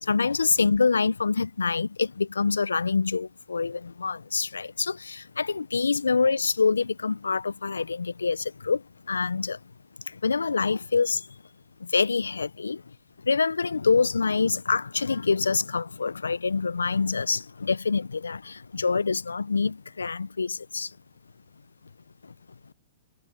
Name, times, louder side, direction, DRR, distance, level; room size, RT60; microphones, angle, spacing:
voice 1, 0.0-9.6 10.1-11.3 11.8-12.8 13.2-20.9 22.2-22.3, left 4 dB, 85° left, 0.8 m, -26 dB
hypercardioid pair, 110°, 0 cm